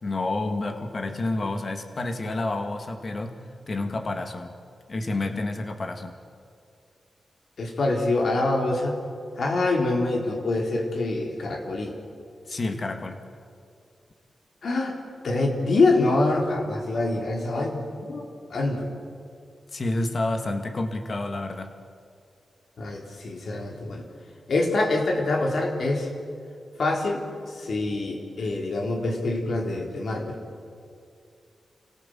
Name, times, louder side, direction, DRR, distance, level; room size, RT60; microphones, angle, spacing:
voice 1, 0.0-3.4 3.7-4.5 4.9-6.1 12.5-13.2 19.7-21.8, left 2 dB, 50° left, 5 dB, 2.5 m, -29 dB
voice 2, 7.6-9.0 9.4-11.9 14.6-15.0 15.2-18.9 22.8-24.1 24.5-26.1 26.8-30.4, left 2 dB, 70° left, 1 dB, 3.8 m, -25 dB
26.0 x 17.5 x 7.9 m, 2.3 s
cardioid pair, 65°, 0 cm